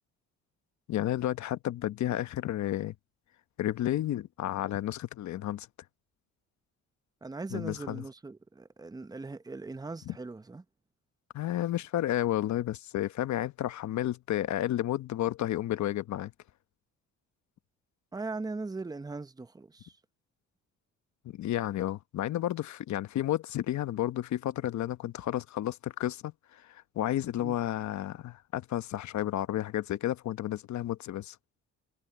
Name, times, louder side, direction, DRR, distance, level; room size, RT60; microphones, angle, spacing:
voice 1, 0.9-2.9 3.6-5.7 7.5-8.0 10.1-10.2 11.3-16.3 21.2-31.4, left 13 dB, 70° left, 1.0 m, -32 dB
voice 2, 7.2-10.6 18.1-20.0 27.4-27.6, right 3 dB, 15° right, 0.8 m, -39 dB
cardioid pair, 90°, 30 cm